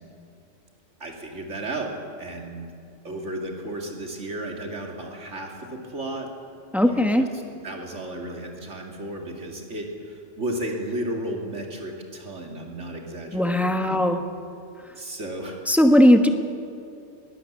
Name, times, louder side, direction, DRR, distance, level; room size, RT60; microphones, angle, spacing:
voice 1, 1.0-1.9 2.2-2.7 3.0-6.3 6.8-7.3 7.6-14.0 15.0-15.8, right 1 dB, 65° right, 1 dB, 2.8 m, -33 dB
voice 2, 6.7-7.3 13.3-14.2 15.7-16.3, equal, ahead, 6 dB, 1.0 m, -18 dB
21.0 x 17.0 x 7.4 m, 2.5 s
omnidirectional pair, 1.4 m